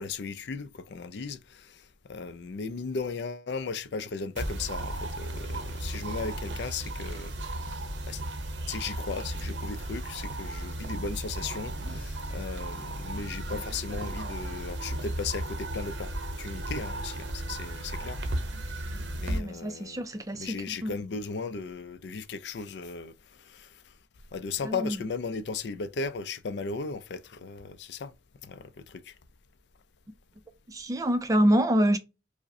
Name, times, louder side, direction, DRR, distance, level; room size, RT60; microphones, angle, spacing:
voice 1, 0.0-7.6 8.1-8.2 8.7-18.2 18.6-18.7 19.2-20.0 20.3-24.0 24.3-28.1 28.4-29.2, left 4 dB, 65° left, 0.4 m, -36 dB
sound 1, 4.4-19.4, right 1 dB, 70° right, 0.7 m, -35 dB
voice 2, 19.3-20.9 24.6-25.0 30.7-32.0, equal, 20° right, 0.4 m, -26 dB
4.8 x 2.1 x 2.6 m
head